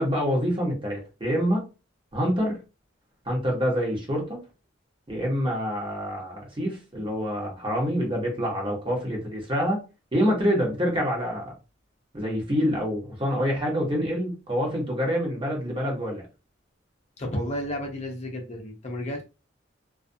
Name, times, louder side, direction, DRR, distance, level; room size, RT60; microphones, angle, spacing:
voice 1, 0.0-1.7 2.1-2.6 3.3-4.4 5.1-9.8 10.1-11.5 12.1-16.2, equal, 25° right, 1.0 m, -26 dB
voice 2, 17.2-19.2, left 1 dB, 35° left, 0.6 m, -32 dB
2.4 x 2.3 x 2.6 m
head